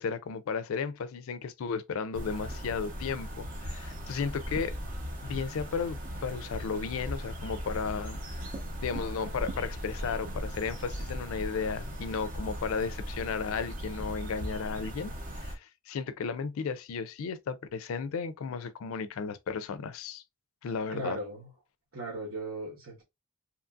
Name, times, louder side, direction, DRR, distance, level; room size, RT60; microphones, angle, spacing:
voice 1, 0.0-4.7 5.2-8.5 8.8-20.2 20.6-21.2, left 5 dB, 70° left, 0.4 m, -34 dB
sound 1, 2.1-15.6, equal, 40° right, 0.7 m, -38 dB
voice 2, 20.9-21.5 21.9-23.0, right 2 dB, 70° right, 1.2 m, -37 dB
2.8 x 2.5 x 2.3 m
head